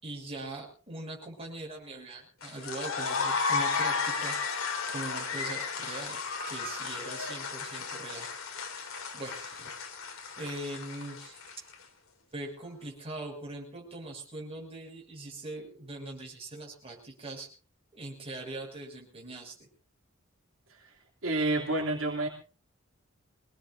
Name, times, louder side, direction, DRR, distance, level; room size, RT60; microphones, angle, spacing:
voice 1, 0.0-4.4 4.9-6.2 6.5-8.3 9.1-9.7 10.4-11.4 12.3-17.5 17.9-19.7, right 2 dB, 30° right, -1 dB, 6.4 m, -41 dB
sound 1, 2.4-11.7, left 4 dB, 80° left, 2.9 m, -34 dB
voice 2, 21.2-22.3, right 2 dB, 70° right, -1 dB, 3.2 m, -28 dB
25.0 x 19.0 x 2.7 m, 0.35 s
head